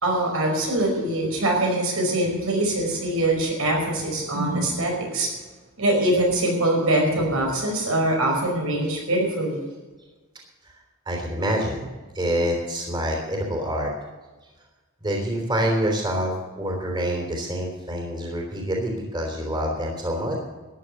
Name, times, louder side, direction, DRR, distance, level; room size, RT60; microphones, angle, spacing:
voice 1, 0.0-5.3 5.8-9.6, right 1 dB, 75° right, 1 dB, 5.2 m, -23 dB
voice 2, 11.0-11.9 12.1-13.9 15.0-20.4, equal, 20° right, 0 dB, 3.3 m, -26 dB
14.0 x 10.0 x 6.6 m, 1.2 s
head